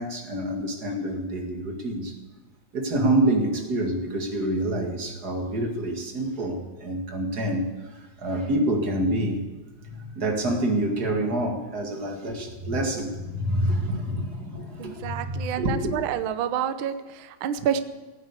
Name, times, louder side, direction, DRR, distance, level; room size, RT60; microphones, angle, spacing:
voice 1, 0.0-2.2 2.7-9.5 9.8-15.9, right 1 dB, 35° right, 2 dB, 2.2 m, -27 dB
voice 2, 14.8-17.8, right 9 dB, 85° right, 10 dB, 1.1 m, -28 dB
16.5 x 9.4 x 8.3 m, 1.3 s
omnidirectional pair, 3.4 m